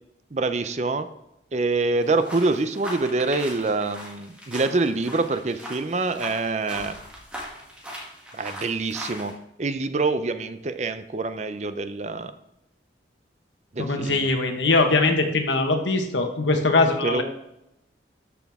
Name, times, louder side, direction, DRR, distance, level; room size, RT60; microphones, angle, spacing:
voice 1, 0.3-1.1 1.5-7.0 8.3-9.3 9.6-12.3 13.7-14.3 17.0-17.2, right 3 dB, 40° right, 11 dB, 0.5 m, -25 dB
sound 1, 2.0-9.3, equal, 5° right, 2.0 m, -39 dB
voice 2, 13.8-17.2, left 3 dB, 85° left, 4 dB, 1.3 m, -21 dB
13.0 x 6.1 x 3.6 m, 0.85 s
head